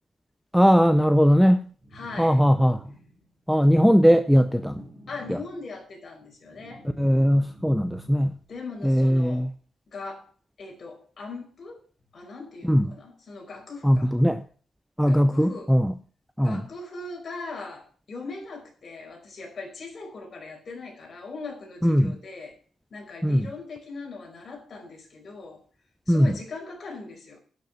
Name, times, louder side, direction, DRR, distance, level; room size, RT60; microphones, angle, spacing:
voice 1, 0.5-1.6 2.2-2.8 3.5-4.8 5.3-5.4 7.0-8.3 8.8-9.5 12.6-12.9 13.8-14.4 15.0-15.9 16.4-16.6 21.8-22.2 23.2-23.5 26.1-26.4, equal, ahead, 10 dB, 0.6 m, -19 dB
sound 1, 1.8-3.4 4.4-5.8 6.2-8.6, equal, 15° right, 2.9 m, -46 dB
voice 2, 1.9-2.4 5.1-6.8 8.5-9.5 9.9-10.3 10.6-11.8 12.1-14.1 15.1-15.7 16.4-22.5 22.9-25.6 26.1-27.4, left 3 dB, 40° left, 1 dB, 5.0 m, -40 dB
11.5 x 6.7 x 7.2 m, 0.43 s
cardioid pair, 140°, 0 cm